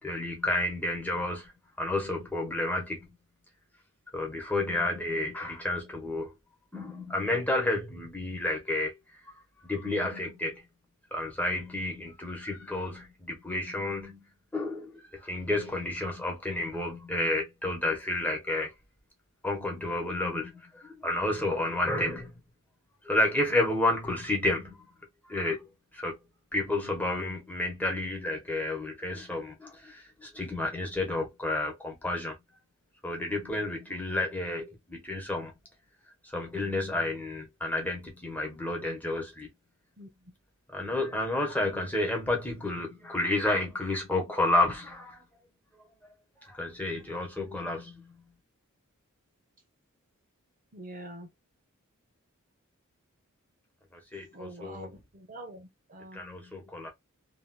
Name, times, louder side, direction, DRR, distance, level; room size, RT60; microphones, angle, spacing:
voice 1, 0.0-1.5 1.8-3.1 4.1-6.3 6.7-9.0 9.6-10.6 11.1-14.2 14.5-18.7 19.4-22.3 23.0-24.8 25.3-25.7 25.9-26.2 26.5-32.3 33.0-35.5 36.2-39.5 40.7-45.2 46.4-48.2 53.9-54.9 56.1-56.9, left 2 dB, 5° left, 1.0 m, -31 dB
voice 2, 50.7-51.3 54.3-56.2, right 1 dB, 35° right, 0.7 m, -45 dB
3.1 x 2.9 x 2.2 m
head